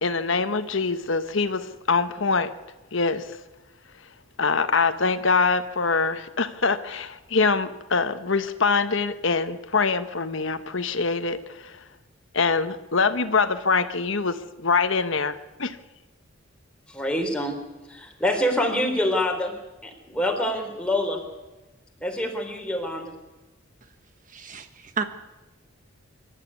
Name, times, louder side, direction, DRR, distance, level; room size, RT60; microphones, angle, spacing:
voice 1, 0.0-2.5 2.9-3.3 4.4-11.8 12.3-15.8, left 4 dB, 65° left, 1.2 m, -24 dB
voice 2, 16.9-17.6 17.9-21.2 22.0-23.1, left 1 dB, 5° left, 3.7 m, -26 dB
voice 3, 24.3-25.0, right 5 dB, 40° right, 1.4 m, -31 dB
25.5 x 13.0 x 9.7 m
head